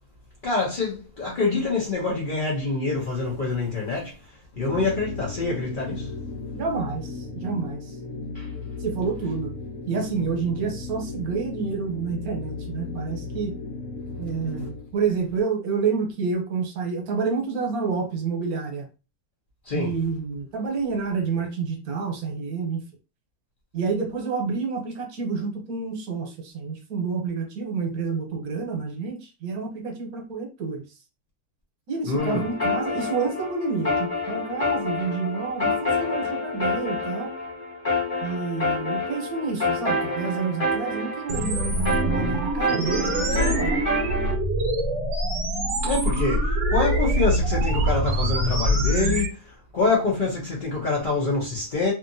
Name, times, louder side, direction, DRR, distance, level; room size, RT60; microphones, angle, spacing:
voice 1, 0.4-4.1 4.6-6.1 8.3-8.5 19.7-20.0 32.1-32.4 45.8-49.4 49.7-51.9, left 3 dB, 50° left, 0.7 m, -25 dB
sound 1, 4.5-14.9, left 3 dB, 70° left, 1.1 m, -35 dB
voice 2, 6.5-8.0 8.8-9.5 9.9-13.5 14.2-18.9 19.7-22.8 23.7-30.8 31.9-37.3 38.2-43.8, right 5 dB, 75° right, 1.2 m, -29 dB
sound 2, 32.2-44.3, left 2 dB, 25° left, 1.4 m, -28 dB
sound 3, 41.3-49.3, right 1 dB, 60° right, 0.9 m, -24 dB
2.7 x 2.5 x 2.6 m
omnidirectional pair, 1.6 m